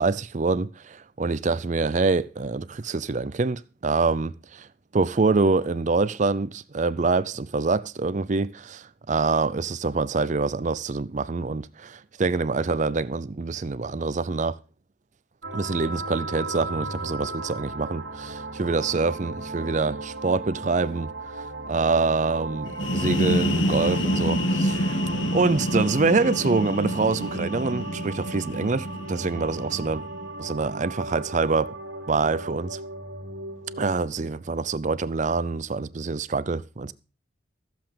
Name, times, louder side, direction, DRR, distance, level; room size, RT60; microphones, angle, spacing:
voice 1, 0.0-4.7 4.9-14.5 15.5-21.1 21.4-25.0 25.3-30.1 30.4-31.7 32.1-32.8 33.8-36.9, right 3 dB, 40° right, 0.5 m, -25 dB
sound 1, 15.4-33.9, right 2 dB, 70° right, 2.5 m, -36 dB
sound 2, 22.7-30.3, equal, 90° left, 1.5 m, -27 dB
14.5 x 7.8 x 5.2 m
head